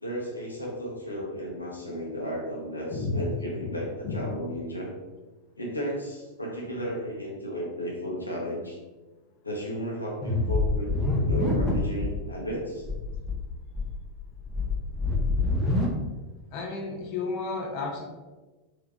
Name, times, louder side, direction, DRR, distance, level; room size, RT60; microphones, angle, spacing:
voice 1, 0.0-4.9 5.6-8.8 9.4-12.9, equal, 80° left, -2 dB, 0.8 m, -34 dB
voice 2, 2.9-3.2 4.0-4.2 16.5-18.0, left 3 dB, 40° left, -1 dB, 0.8 m, -32 dB
sound 1, 10.2-12.1 12.4-12.5 12.8-13.3 13.7-15.8, left 2 dB, 5° right, 1.0 m, -26 dB
3.7 x 3.5 x 3.2 m, 1.2 s
figure-of-eight pair, 90°, 0 cm